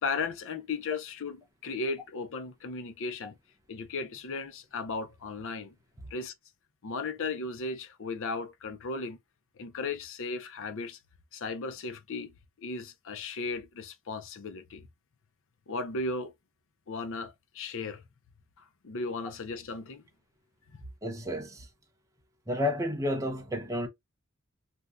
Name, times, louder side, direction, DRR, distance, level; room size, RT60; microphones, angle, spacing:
voice 1, 0.0-3.4 3.7-5.7 6.1-6.3 6.8-9.2 9.6-11.0 11.3-14.9 15.7-16.3 16.9-18.0 18.6-20.0 20.7-20.8, left 3 dB, 60° left, 0.5 m, -36 dB
voice 2, 21.0-21.7 22.5-23.9, left 1 dB, 15° right, 0.7 m, -31 dB
2.7 x 2.2 x 3.5 m
head